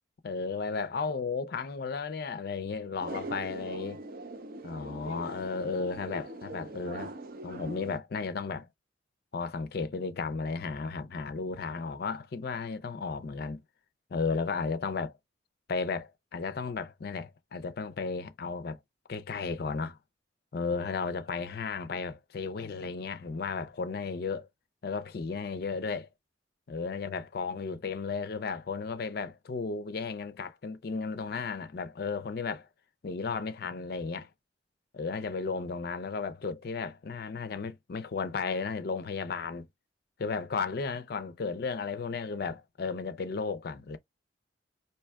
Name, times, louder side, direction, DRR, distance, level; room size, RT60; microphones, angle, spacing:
voice 1, 0.2-4.0 4.6-7.1 7.4-8.7 9.3-13.6 14.1-15.1 15.7-18.8 19.1-20.0 20.5-24.5 24.8-26.1 26.7-32.7 33.0-34.3 34.9-39.7 40.2-44.0, left 4 dB, 55° left, 0.4 m, -34 dB
sound 1, 3.0-8.0, right 2 dB, 50° right, 0.5 m, -41 dB
4.4 x 2.8 x 2.2 m
head